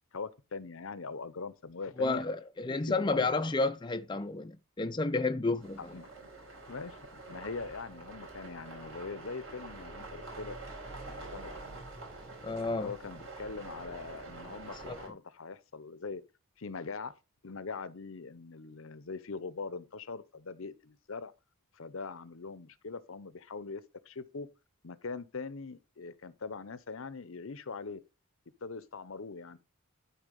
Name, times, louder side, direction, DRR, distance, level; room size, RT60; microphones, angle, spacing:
voice 1, 0.1-2.3 2.7-3.3 5.9-6.3 6.7-7.0 7.3-10.6 11.1-11.8 12.7-16.2 16.6-17.1 17.4-21.3 21.7-24.5 24.8-28.0 28.6-29.6, left 4 dB, 65° left, 0.8 m, -42 dB
voice 2, 2.0-5.8 12.4-12.9 14.9-15.0, left 3 dB, 20° left, 0.5 m, -31 dB
sound 1, 5.6-15.1, right 2 dB, 60° right, 4.8 m, -46 dB
12.0 x 4.5 x 5.3 m
head